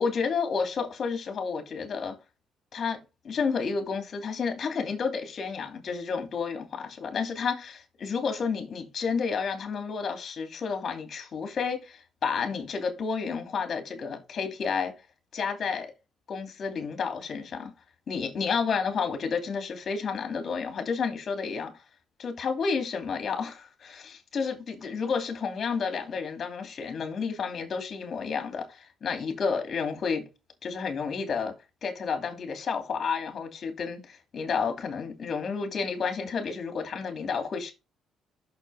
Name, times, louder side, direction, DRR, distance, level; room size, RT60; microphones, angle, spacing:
voice 1, 0.0-2.2 2.7-3.0 3.2-14.9 15.3-15.9 16.3-17.7 18.1-21.7 22.2-30.3 30.6-31.5 31.8-37.7, left 5 dB, 50° left, 2.6 m, -31 dB
6.5 x 6.0 x 4.1 m
cardioid pair, 90°, 0 cm